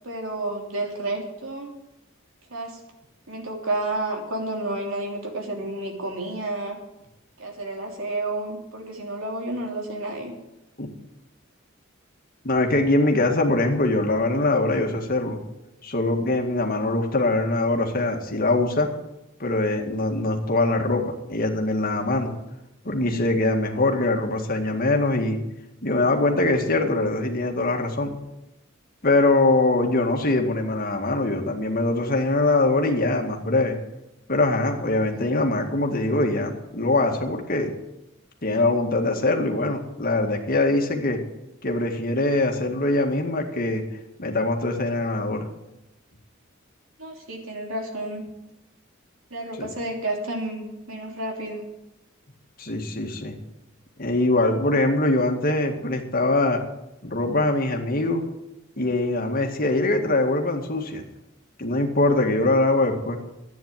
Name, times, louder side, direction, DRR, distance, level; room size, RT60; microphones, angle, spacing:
voice 1, 0.0-1.7 2.5-2.8 3.3-6.8 7.4-10.3 47.0-48.3 49.3-51.6, right 2 dB, 80° right, 1 dB, 3.2 m, -30 dB
voice 2, 12.4-15.4 15.8-18.9 19.4-22.3 22.8-25.4 25.8-28.2 29.0-33.7 34.3-37.7 38.4-41.2 41.6-43.8 44.2-45.5 49.6-49.7 52.6-53.4 54.0-56.6 57.0-58.2 58.8-61.0 61.6-63.2, left 2 dB, 45° left, 2 dB, 2.1 m, -23 dB
11.5 x 9.4 x 9.0 m, 0.91 s
head